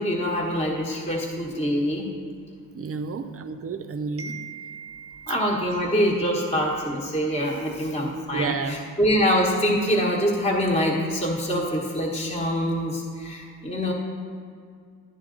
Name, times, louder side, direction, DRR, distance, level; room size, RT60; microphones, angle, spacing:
voice 1, 0.0-2.1 5.3-13.9, equal, 15° left, -3 dB, 1.2 m, -24 dB
voice 2, 2.7-5.5 8.3-8.8, right 5 dB, 40° right, 8 dB, 0.6 m, -32 dB
11.0 x 10.5 x 3.8 m, 2.2 s
cardioid pair, 135°, 35 cm